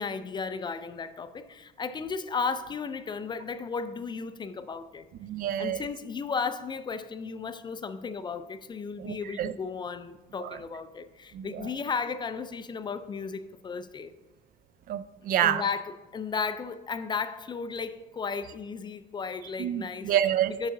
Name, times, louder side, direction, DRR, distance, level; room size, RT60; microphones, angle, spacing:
voice 1, 0.0-5.1 5.6-14.1 15.4-20.1 20.6-20.7, left 5 dB, 25° left, 0.4 m, -34 dB
voice 2, 5.2-5.8 9.0-9.5 10.4-10.6 11.3-11.7 14.9-15.6 19.6-20.5, right 10 dB, 55° right, 0.4 m, -28 dB
6.5 x 3.7 x 5.8 m
cardioid pair, 110°, 17 cm